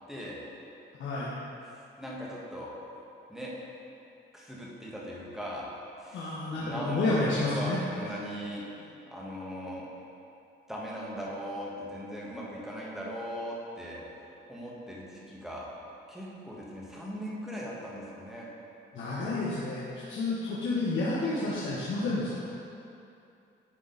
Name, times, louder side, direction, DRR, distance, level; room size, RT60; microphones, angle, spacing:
voice 1, 0.1-0.4 2.0-2.7 3.3-3.5 4.3-5.7 6.0-9.9 10.7-14.0 14.5-15.7 16.1-18.5, equal, ahead, -5 dB, 1.7 m, -39 dB
voice 2, 1.0-1.3 6.1-7.8 18.9-22.4, left 2 dB, 70° left, -7 dB, 1.1 m, -30 dB
10.5 x 3.9 x 4.1 m, 2.7 s
cardioid pair, 90°, 20 cm